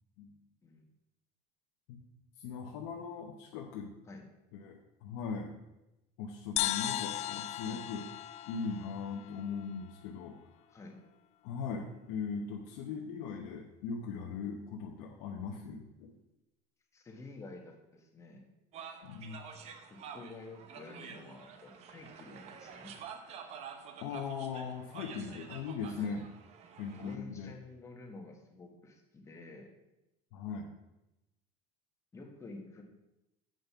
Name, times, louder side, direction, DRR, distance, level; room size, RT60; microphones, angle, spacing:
voice 1, 2.4-3.9 4.5-5.5 6.2-8.1 8.4-10.4 11.4-16.1 19.0-19.4 24.0-26.2 26.8-27.5 30.3-30.7, left 5 dB, 80° left, -1 dB, 1.0 m, -39 dB
sound 1, 6.6-10.1, left 14 dB, 45° left, 0.4 m, -37 dB
voice 2, 16.9-18.5 19.9-22.9 25.3-25.4 26.0-26.2 26.9-29.7 32.1-32.8, left 3 dB, 20° left, 2 dB, 1.4 m, -50 dB
sound 2, 18.7-27.2, right 7 dB, 45° right, 0.9 m, -49 dB
7.8 x 5.2 x 5.6 m, 0.94 s
cardioid pair, 135°, 15 cm